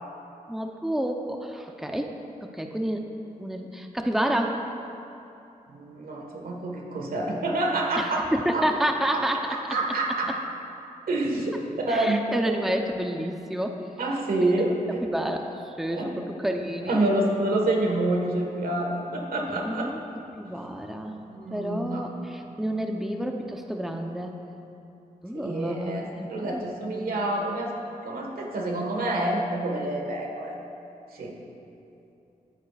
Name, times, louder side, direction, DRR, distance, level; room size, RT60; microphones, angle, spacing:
voice 1, 0.5-2.1 2.4-3.0 3.4-4.6 8.0-9.4 11.9-13.9 14.4-14.7 15.0-17.0 19.5-20.0 20.4-21.2 21.5-24.4 25.2-27.1, right 1 dB, ahead, 3 dB, 0.8 m, -29 dB
voice 2, 5.7-8.3 8.5-8.6 9.1-9.2 9.5-10.3 11.1-12.4 14.0-15.0 15.9-16.1 16.9-19.9 21.3-22.0 25.3-27.7 28.0-30.6 31.1-31.4, right 2 dB, 85° right, 0 dB, 1.7 m, -27 dB
23.0 x 8.9 x 2.5 m, 2.8 s
cardioid pair, 80°, 15 cm